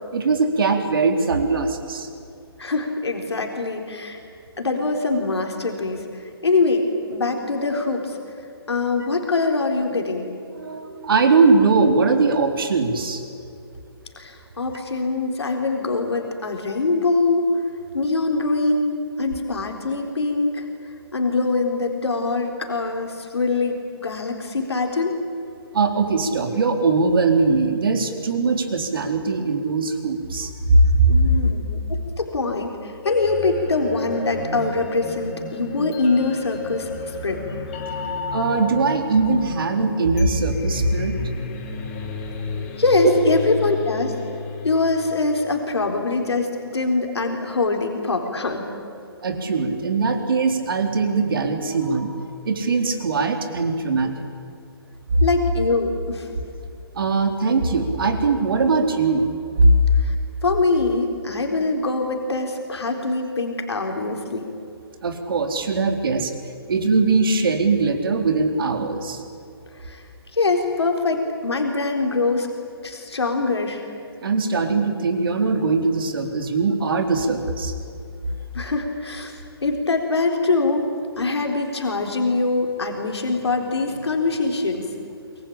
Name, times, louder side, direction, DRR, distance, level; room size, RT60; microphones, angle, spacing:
voice 1, 0.1-2.1 10.5-13.2 25.7-31.2 38.3-41.2 43.0-43.1 49.2-54.1 55.1-55.2 56.9-59.3 59.6-59.8 65.0-66.3 66.7-69.2 74.2-77.8, right 3 dB, 60° right, 5 dB, 3.9 m, -20 dB
voice 2, 2.6-4.2 4.6-8.2 8.7-10.3 14.2-17.5 17.9-20.7 21.1-25.1 31.1-37.4 42.8-44.1 44.6-48.7 55.2-56.3 60.0-60.2 60.4-64.5 69.8-70.0 70.3-72.5 72.8-73.9 78.5-80.9 81.2-84.9, left 3 dB, 90° left, 3 dB, 4.1 m, -23 dB
sound 1, 33.0-46.0, left 3 dB, 25° left, 4.3 m, -32 dB
26.0 x 23.5 x 8.7 m, 2.6 s
hypercardioid pair, 160°, 13 cm